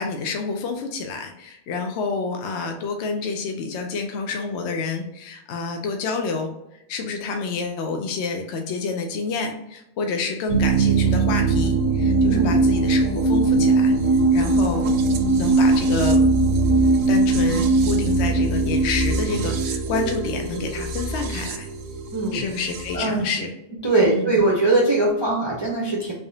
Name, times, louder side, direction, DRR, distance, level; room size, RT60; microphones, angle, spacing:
voice 1, 0.0-13.9 14.3-14.9 15.4-16.2 17.1-21.7 22.3-23.5 24.0-24.3, left 4 dB, 70° left, 3 dB, 0.8 m, -28 dB
sound 1, 10.5-23.0, right 3 dB, 85° right, 0.9 m, -20 dB
voice 2, 12.3-12.6 22.1-22.4 22.9-23.3 23.8-26.1, right 2 dB, 30° right, -3 dB, 0.6 m, -21 dB
3.5 x 3.4 x 2.6 m, 0.84 s
omnidirectional pair, 1.3 m